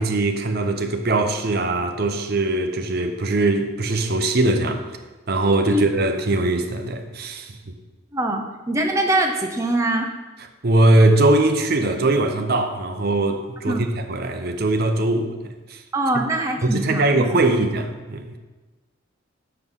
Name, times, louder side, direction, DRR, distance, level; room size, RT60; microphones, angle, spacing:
voice 1, 0.0-4.8 5.3-7.6 10.6-15.3 15.7-15.8 16.6-18.4, right 2 dB, 50° right, 0.7 m, -21 dB
voice 2, 8.1-10.1 13.7-13.8 15.9-17.3, right 1 dB, 15° right, 0.6 m, -23 dB
6.8 x 5.5 x 6.2 m
head